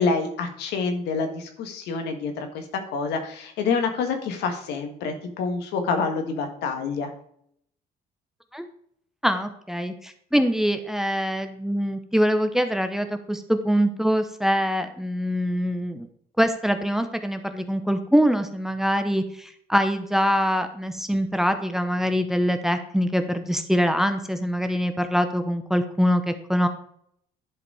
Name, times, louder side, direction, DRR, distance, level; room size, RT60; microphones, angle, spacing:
voice 1, 0.0-7.1, left 4 dB, 80° left, 5 dB, 1.7 m, -27 dB
voice 2, 9.2-16.1 16.4-26.7, equal, ahead, 8 dB, 0.8 m, -24 dB
11.0 x 4.9 x 4.9 m, 0.67 s
cardioid pair, 110°, 17 cm